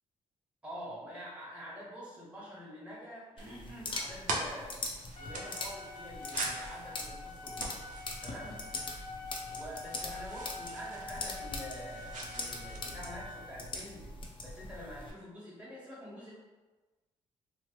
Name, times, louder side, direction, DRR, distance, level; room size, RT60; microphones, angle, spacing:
voice 1, 0.6-4.8 5.2-7.7 8.2-8.6 9.5-14.1 14.4-16.3, equal, 10° right, -7 dB, 1.1 m, -46 dB
sound 1, 3.4-15.1, left 2 dB, 40° left, 0.5 m, -42 dB
sound 2, 3.4-12.8, right 2 dB, 75° right, 0.5 m, -43 dB
Trumpet, 5.1-13.6, left 3 dB, 75° left, 0.7 m, -46 dB
2.9 x 2.0 x 3.1 m, 1.2 s
cardioid pair, 80°, 13 cm